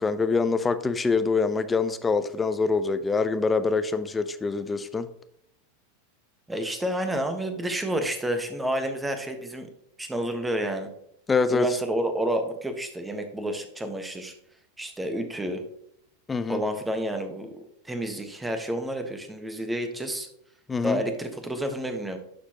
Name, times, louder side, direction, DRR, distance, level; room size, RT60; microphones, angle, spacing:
voice 1, 0.0-5.1 11.3-11.7 16.3-16.6 20.7-21.0, left 4 dB, 15° left, 11 dB, 0.6 m, -25 dB
voice 2, 6.5-9.7 10.0-10.9 11.5-14.3 14.8-15.6 16.5-20.3 20.8-22.2, right 1 dB, 10° right, 6 dB, 1.3 m, -30 dB
11.5 x 4.5 x 2.9 m, 0.72 s
figure-of-eight pair, 90°, 0 cm